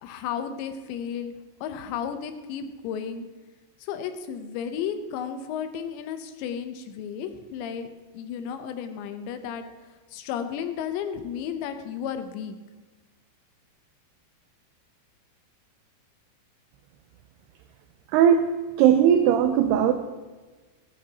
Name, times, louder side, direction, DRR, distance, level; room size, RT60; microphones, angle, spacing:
voice 1, 0.0-3.3 3.8-9.6 10.1-12.6, left 8 dB, 85° left, 8 dB, 3.1 m, -33 dB
voice 2, 18.1-18.5 18.8-19.9, right 9 dB, 80° right, 7 dB, 2.5 m, -18 dB
14.5 x 14.5 x 2.9 m, 1.3 s
omnidirectional pair, 5.1 m